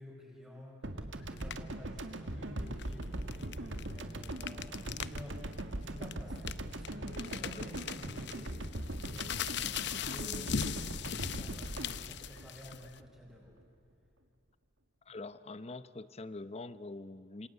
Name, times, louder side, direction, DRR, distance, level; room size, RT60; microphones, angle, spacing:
voice 1, 0.0-8.6 9.0-13.6, left 1 dB, 5° right, -3 dB, 5.2 m, -51 dB
sound 1, 0.8-13.3, right 1 dB, 80° right, 1.9 m, -41 dB
sound 2, 1.4-1.7 2.7-5.2 5.5-5.6 6.0-13.0, left 8 dB, 65° left, 0.7 m, -39 dB
voice 2, 15.1-17.5, left 2 dB, 35° left, 14 dB, 0.8 m, -44 dB
27.5 x 27.0 x 8.1 m, 2.5 s
head